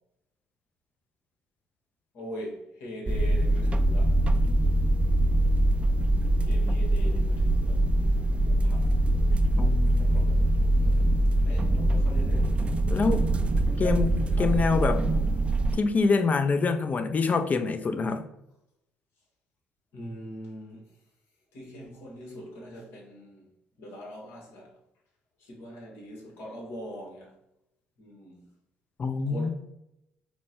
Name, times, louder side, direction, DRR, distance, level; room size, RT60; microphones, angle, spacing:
voice 1, 2.1-4.8 6.4-7.8 8.4-8.9 9.5-9.6 10.0-10.5 10.7-12.6 13.6-14.1 14.4-14.6 19.9-20.9 21.5-23.5 23.8-24.7 25.4-27.3 28.0-28.5 29.3-29.5, equal, 70° left, 1.3 m, -42 dB
sound 1, 3.1-15.8, right 1 dB, 25° right, 0.4 m, -23 dB
voice 2, 9.6-9.9 12.9-13.3 13.8-14.1 14.4-15.0 15.7-18.3 29.0-29.5, left 4 dB, 35° left, 0.5 m, -25 dB
4.3 x 2.2 x 4.3 m
hypercardioid pair, 60°, 4 cm